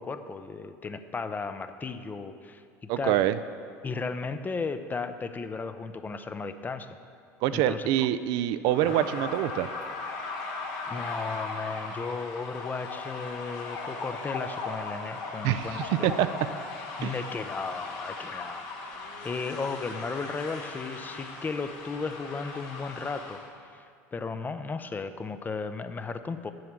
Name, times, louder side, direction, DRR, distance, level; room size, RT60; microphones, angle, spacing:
voice 1, 0.0-2.6 3.0-3.2 3.8-6.9 7.5-7.9 8.9-9.1 10.9-16.2 17.0-23.4 24.1-26.5, left 4 dB, 20° left, 10 dB, 0.6 m, -35 dB
voice 2, 2.9-3.4 7.4-9.7 15.4-16.3 17.0-17.1, right 12 dB, 65° right, 13 dB, 0.4 m, -25 dB
sound 1, 8.7-23.5, left 3 dB, 65° left, 1.6 m, -38 dB
7.7 x 6.9 x 7.5 m, 2.3 s
hypercardioid pair, 90°, 8 cm